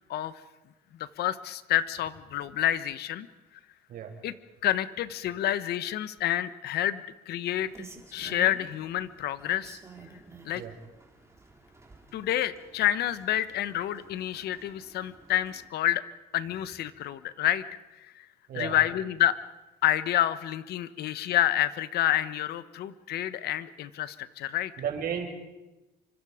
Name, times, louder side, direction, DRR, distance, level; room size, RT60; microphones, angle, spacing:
voice 1, 1.0-3.3 4.2-4.3 4.6-7.7 8.1-9.8 10.4-10.6 12.1-16.0 16.3-17.6 18.0-18.3 18.5-19.4 19.8-24.7, left 12 dB, 70° left, 14 dB, 1.3 m, -28 dB
Rain, 7.5-15.7, right 4 dB, 15° right, 3.8 m, -51 dB
voice 2, 24.8-25.3, right 8 dB, 60° right, 4 dB, 5.3 m, -33 dB
28.5 x 25.0 x 5.1 m, 1.0 s
cardioid pair, 110°, 17 cm